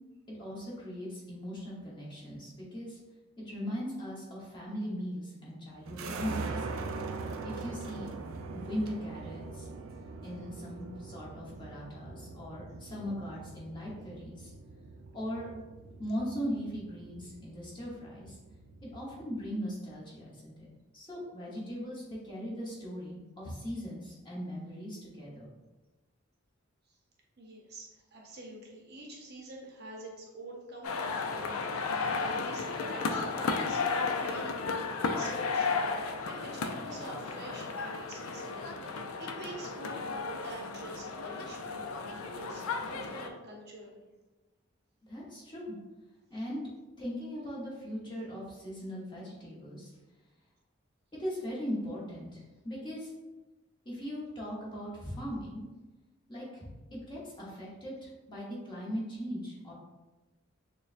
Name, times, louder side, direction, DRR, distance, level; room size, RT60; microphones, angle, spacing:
voice 1, 0.3-3.0 3.4-6.7 7.4-8.1 8.5-9.7 10.2-14.5 15.1-15.5 16.0-18.3 18.8-20.7 20.9-25.5 45.1-45.8 46.3-46.6 47.0-49.9 51.2-53.1 53.8-55.6 56.3-59.7, equal, 20° left, -6 dB, 0.9 m, -39 dB
sound 1, 5.9-19.4, right 3 dB, 80° right, 0.4 m, -42 dB
voice 2, 27.4-44.0, right 1 dB, 50° right, -1 dB, 0.7 m, -46 dB
sound 2, 30.8-43.3, left 4 dB, 85° left, 0.4 m, -34 dB
6.4 x 2.2 x 2.5 m, 1.1 s
head